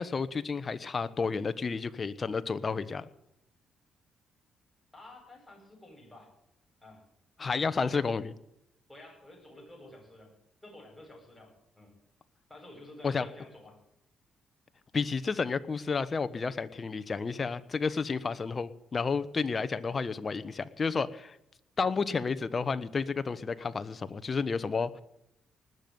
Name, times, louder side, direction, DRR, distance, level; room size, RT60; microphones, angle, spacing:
voice 1, 0.0-3.1 7.4-8.3 13.0-13.3 14.9-21.4 21.8-25.0, left 5 dB, 35° left, 13 dB, 1.1 m, -31 dB
voice 2, 4.9-6.3 6.8-7.0 7.7-8.0 8.9-10.3 10.6-12.0 12.5-13.8, left 1 dB, 5° left, 0 dB, 8.0 m, -51 dB
19.5 x 7.1 x 9.5 m, 0.82 s
cardioid pair, 90°, 0 cm